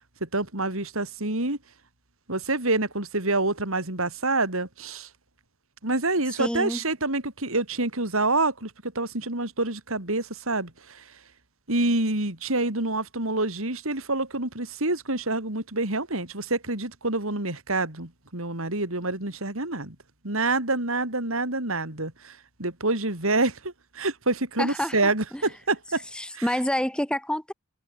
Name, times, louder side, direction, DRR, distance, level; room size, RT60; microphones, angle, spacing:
voice 1, 0.2-1.6 2.3-5.1 5.8-11.0 11.7-19.9 20.2-26.0 26.3-26.4, right 2 dB, 65° right, 4.8 m, -27 dB
voice 2, 6.4-6.8 24.6-25.4 26.1-27.5, equal, 5° left, 4.5 m, -28 dB
head